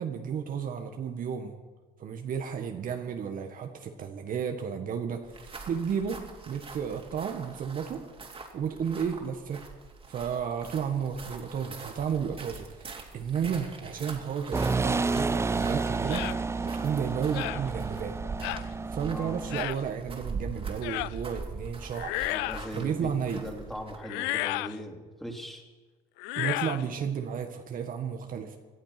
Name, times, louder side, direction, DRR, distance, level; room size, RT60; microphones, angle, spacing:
voice 1, 0.0-1.6 2.0-5.4 5.7-8.0 8.5-9.6 10.1-16.3 16.6-18.2 18.9-22.2 22.7-23.4 26.3-28.6, right 7 dB, 50° right, 5 dB, 1.7 m, -32 dB
sound 1, 5.2-24.1, right 4 dB, 30° right, 3.1 m, -43 dB
sound 2, 14.5-19.6, right 4 dB, 15° right, 0.5 m, -30 dB
sound 3, 16.1-16.4 17.3-17.6 18.4-18.7 19.5-19.8 20.8-21.1 21.9-22.7 24.0-24.8 26.2-26.8, left 20 dB, 75° left, 0.4 m, -32 dB
voice 2, 22.3-25.6, equal, ahead, 2 dB, 3.4 m, -40 dB
18.5 x 12.0 x 6.0 m, 1.3 s
supercardioid pair, 80°, 18 cm